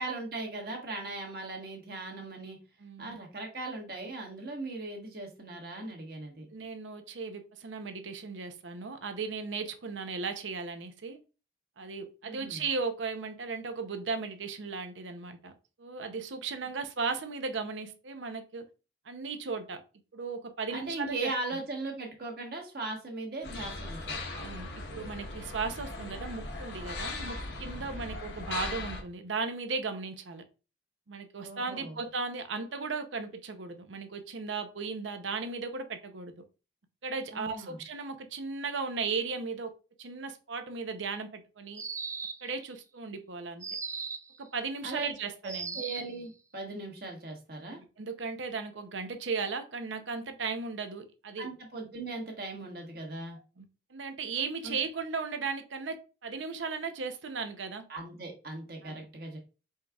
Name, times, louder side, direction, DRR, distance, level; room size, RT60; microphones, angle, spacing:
voice 1, 0.0-2.6 3.0-6.5 12.2-12.6 20.7-24.2 31.4-31.9 37.3-37.8 44.8-45.1 45.4-47.8 51.4-53.4 54.6-54.8 57.9-59.4, right 2 dB, 55° right, 1.4 m, -38 dB
voice 2, 2.8-3.2 6.5-11.2 11.8-15.5 15.8-18.7 19.1-19.8 20.1-21.6 24.3-30.4 31.1-36.4 37.0-39.7 40.0-41.8 42.4-43.6 44.4-45.8 48.0-51.5 53.6-57.9 58.8-59.1, right 4 dB, 90° right, 0.7 m, -36 dB
sound 1, 23.4-29.0, left 2 dB, 75° left, 1.0 m, -38 dB
sound 2, 41.7-42.6 43.6-44.4 45.4-46.2, right 4 dB, 15° right, 0.3 m, -37 dB
4.7 x 4.4 x 2.3 m
head